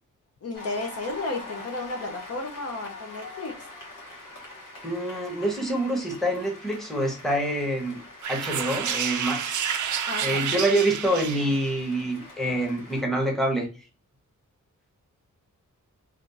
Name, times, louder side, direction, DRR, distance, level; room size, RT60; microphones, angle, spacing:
voice 1, 0.4-3.7 10.1-10.4, left 2 dB, 50° left, 0.7 m, -33 dB
Cheering / Applause, 0.5-13.0, left 2 dB, 80° left, 1.2 m, -44 dB
voice 2, 4.8-8.0 8.3-9.6 10.2-13.7, right 1 dB, ahead, 0.9 m, -26 dB
sound 1, 8.2-11.8, right 8 dB, 70° right, 0.5 m, -29 dB
3.4 x 2.4 x 2.6 m
wide cardioid pair, 105°, 31 cm